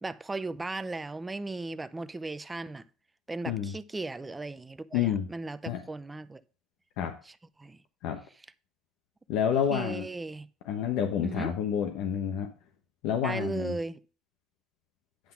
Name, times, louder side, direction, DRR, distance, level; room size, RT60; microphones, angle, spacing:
voice 1, 0.0-2.8 3.3-6.4 7.2-7.8 9.7-10.5 11.2-11.5 13.2-14.0, right 3 dB, 15° right, 0.5 m, -36 dB
voice 2, 4.9-5.2 5.7-5.8 7.0-7.1 8.0-8.2 9.3-10.0 10.7-12.5 13.0-13.7, left 8 dB, 80° left, 1.0 m, -29 dB
10.0 x 3.9 x 5.8 m
cardioid pair, 120°, 0 cm